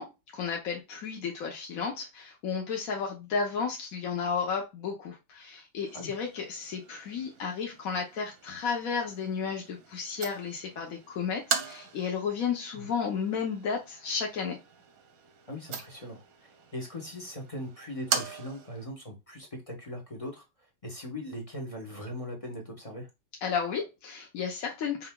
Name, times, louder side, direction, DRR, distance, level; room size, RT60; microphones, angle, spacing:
voice 1, 0.0-14.6 23.4-25.1, left 6 dB, 55° left, 0 dB, 1.0 m, -33 dB
sound 1, 5.8-18.9, right 7 dB, 60° right, 1.0 m, -40 dB
voice 2, 15.5-20.4 20.8-23.1, left 1 dB, 30° left, 2 dB, 0.6 m, -40 dB
5.4 x 3.9 x 2.2 m, 0.25 s
omnidirectional pair, 2.1 m